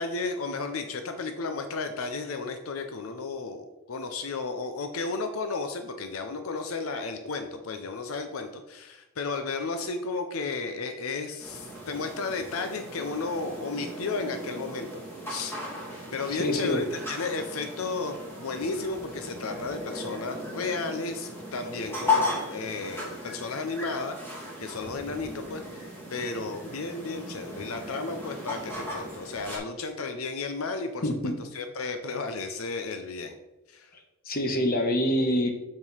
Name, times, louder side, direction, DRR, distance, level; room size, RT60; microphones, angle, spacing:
voice 1, 0.0-15.0 15.3-15.6 16.1-24.2 24.6-25.8 26.1-33.4 33.7-33.9, left 4 dB, 80° left, 7 dB, 0.6 m, -33 dB
sound 1, 11.4-29.6, left 2 dB, 10° left, 2.3 m, -36 dB
voice 2, 16.3-16.8 31.0-31.3 34.3-35.5, left 1 dB, 45° left, 4 dB, 1.1 m, -25 dB
7.3 x 4.9 x 5.5 m, 1.0 s
head